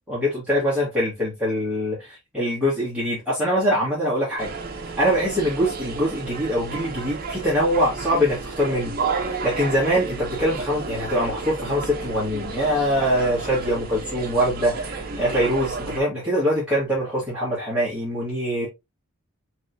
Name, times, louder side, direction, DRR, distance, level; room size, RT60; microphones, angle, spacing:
voice 1, 0.1-4.5 5.0-18.7, equal, 5° right, 1.7 m, -23 dB
sound 1, 4.4-16.0, right 4 dB, 40° right, 0.8 m, -32 dB
4.8 x 3.2 x 2.7 m
head